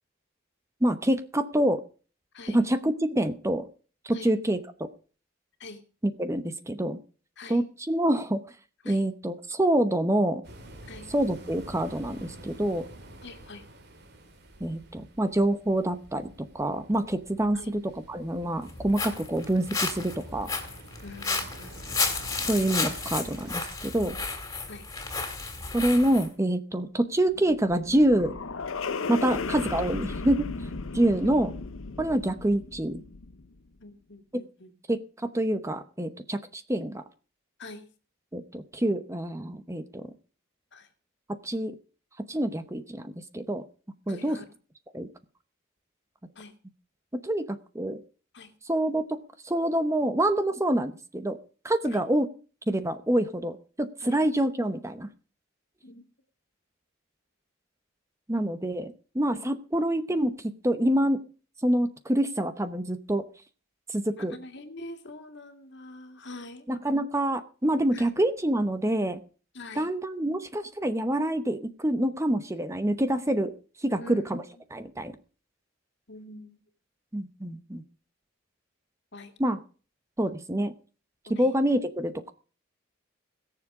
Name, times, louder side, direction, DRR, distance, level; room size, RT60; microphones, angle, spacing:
voice 1, 0.8-1.8 2.5-3.7 4.0-4.9 6.0-7.0 7.5-8.4 8.9-10.4 11.1-12.8 14.6-17.8 18.1-20.5 22.5-24.2 25.7-28.3 29.1-30.5 30.9-31.5 32.0-33.0 34.3-34.4 34.9-37.0 38.3-40.1 41.4-41.7 42.3-43.6 44.1-44.4 44.9-45.1 47.1-48.0 48.7-49.2 49.4-51.4 51.6-52.3 52.7-55.1 58.3-61.2 61.6-63.2 63.9-64.3 66.7-69.2 69.8-73.5 73.8-74.4 74.7-75.1 77.1-77.8 79.4-79.6 80.2-80.7 81.4-82.3, right 1 dB, 15° right, 10 dB, 0.9 m, -26 dB
sound 1, 10.4-23.5, right 1 dB, 55° right, 2.7 m, -48 dB
voice 2, 13.2-13.7 17.5-17.7 21.0-21.8 24.7-24.9 26.8-26.9 33.8-34.7 37.6-37.9 40.7-40.9 44.1-44.5 46.4-46.5 48.3-48.5 51.8-52.0 54.0-54.2 55.8-56.0 59.4-59.5 64.1-66.7 67.9-68.1 69.5-69.9 73.8-74.6 76.1-76.6 79.1-79.3 81.3-81.5, left 2 dB, 60° left, 7 dB, 2.3 m, -45 dB
Walk footsteps, 18.6-26.3, left 4 dB, 15° left, 2.8 m, -32 dB
sound 2, 27.1-33.6, left 4 dB, 80° left, 0.8 m, -35 dB
20.5 x 7.3 x 4.8 m, 0.38 s
head